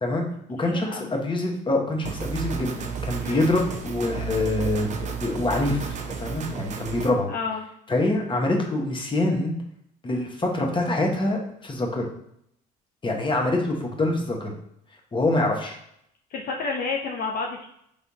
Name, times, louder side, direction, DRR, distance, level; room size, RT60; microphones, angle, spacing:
voice 1, 0.0-4.9 5.2-7.3 7.9-9.5 10.0-12.0 13.0-14.5 15.1-15.8, left 2 dB, 25° left, 1 dB, 1.2 m, -25 dB
voice 2, 0.6-1.1 3.2-3.5 7.3-7.7 13.1-13.3 16.3-17.7, left 4 dB, 55° left, 0 dB, 0.6 m, -30 dB
sound 1, 2.0-7.1, right 6 dB, 40° right, 0.6 m, -32 dB
4.4 x 3.4 x 2.7 m, 0.74 s
supercardioid pair, 75°, 19 cm